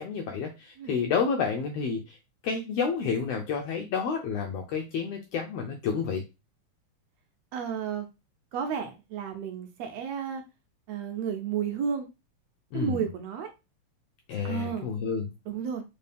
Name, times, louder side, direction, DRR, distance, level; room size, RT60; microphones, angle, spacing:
voice 1, 0.0-2.2 2.4-6.2 12.7-13.0 14.3-15.3, left 6 dB, 80° left, 3 dB, 1.4 m, -30 dB
voice 2, 7.5-8.1 8.5-10.4 10.9-12.1 12.7-13.5 14.4-14.9 15.5-15.8, right 7 dB, 75° right, 5 dB, 1.7 m, -32 dB
4.5 x 2.7 x 3.3 m, 0.26 s
omnidirectional pair, 3.3 m